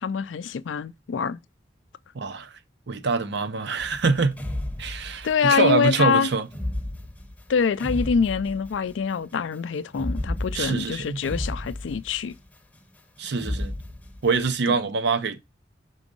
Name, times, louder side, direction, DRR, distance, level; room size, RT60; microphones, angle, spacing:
voice 1, 0.0-1.4 5.2-6.3 7.5-12.3 14.7-14.8, left 6 dB, 80° left, 0.4 m, -25 dB
voice 2, 2.1-2.5 2.9-4.4 4.8-6.5 10.5-11.2 13.2-13.7 14.2-15.4, right 4 dB, 65° right, 0.6 m, -24 dB
sound 1, 3.8-5.5 6.5-9.0 9.9-12.5 13.3-14.5, left 1 dB, 10° left, 0.7 m, -33 dB
6.2 x 3.8 x 5.2 m
head